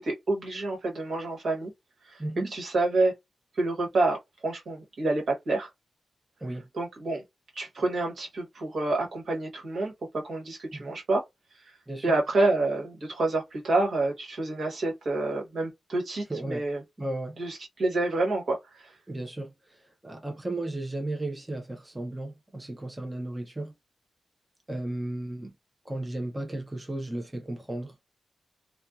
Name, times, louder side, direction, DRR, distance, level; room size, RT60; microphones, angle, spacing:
voice 1, 0.0-1.7 2.1-2.2 2.5-3.1 3.6-4.2 4.4-5.7 6.7-7.2 7.5-9.9 10.3-11.2 12.0-16.8 17.4-18.9, right 2 dB, 65° right, 1.2 m, -28 dB
voice 2, 2.2-2.5 6.4-6.7 10.7-10.9 11.9-12.2 16.3-16.6 17.0-17.4 19.1-23.7 24.7-25.5 25.9-27.9, right 1 dB, 15° right, 0.5 m, -35 dB
2.6 x 2.2 x 2.3 m
wide cardioid pair, 100°, 0 cm